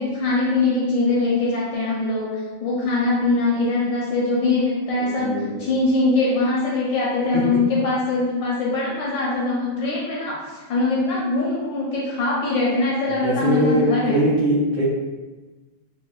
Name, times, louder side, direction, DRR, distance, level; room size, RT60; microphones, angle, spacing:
voice 1, 0.0-14.2, left 3 dB, 75° left, -5 dB, 1.1 m, -22 dB
voice 2, 5.2-5.7 7.3-7.4 13.2-14.8, right 1 dB, 70° right, -7 dB, 1.1 m, -21 dB
4.0 x 2.1 x 2.2 m, 1.2 s
omnidirectional pair, 2.4 m